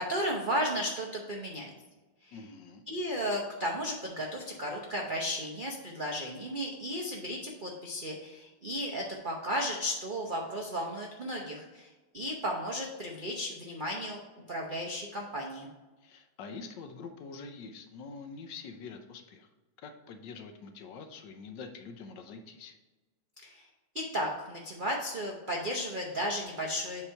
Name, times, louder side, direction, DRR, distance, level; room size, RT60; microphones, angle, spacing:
voice 1, 0.0-1.7 2.2-2.4 2.9-14.2 14.5-15.7 23.4-23.7 23.9-27.0, equal, 75° right, -1 dB, 0.4 m, -34 dB
voice 2, 2.3-2.8 16.0-19.5 19.8-22.7, left 4 dB, 70° left, 6 dB, 1.2 m, -45 dB
7.9 x 2.9 x 5.5 m, 1.2 s
omnidirectional pair, 2.2 m